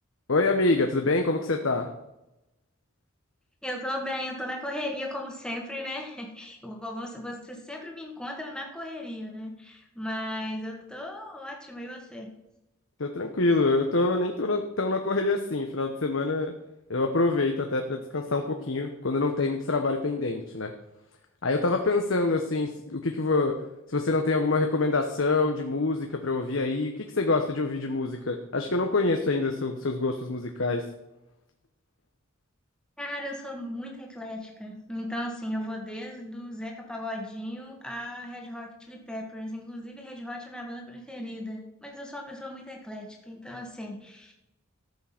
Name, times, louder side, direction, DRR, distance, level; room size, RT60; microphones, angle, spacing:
voice 1, 0.3-1.9 13.0-16.5 16.9-20.7 21.4-23.6 23.9-30.8, left 3 dB, 70° left, 4 dB, 1.0 m, -26 dB
voice 2, 3.6-12.3 33.0-44.3, left 1 dB, 5° left, 1 dB, 1.8 m, -36 dB
14.0 x 7.5 x 5.9 m, 0.93 s
head